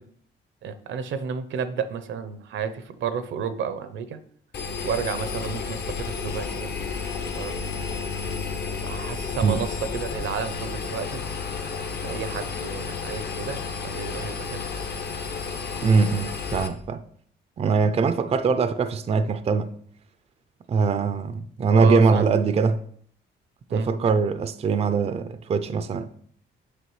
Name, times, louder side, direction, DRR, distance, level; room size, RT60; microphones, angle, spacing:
voice 1, 0.6-4.2 4.8-6.7 7.2-7.6 8.8-11.2 12.0-14.7 21.7-22.3 23.7-23.9, right 7 dB, 70° right, 0.7 m, -32 dB
Engine, 4.5-16.7, left 5 dB, 55° left, 1.0 m, -32 dB
voice 2, 15.8-17.0 17.6-19.7 20.7-22.8 23.7-26.1, right 4 dB, 30° right, 0.4 m, -22 dB
8.2 x 5.4 x 3.1 m
cardioid pair, 90°, 20 cm